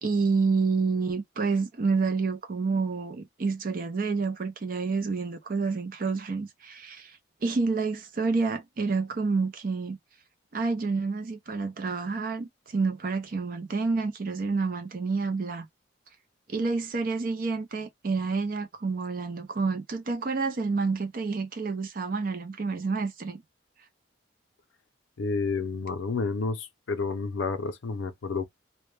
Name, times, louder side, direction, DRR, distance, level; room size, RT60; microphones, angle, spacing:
voice 1, 0.0-10.0 10.5-15.7 16.5-23.4, right 4 dB, 45° right, 0.5 m, -29 dB
voice 2, 25.2-28.5, left 4 dB, 75° left, 0.5 m, -30 dB
2.1 x 2.1 x 3.1 m
head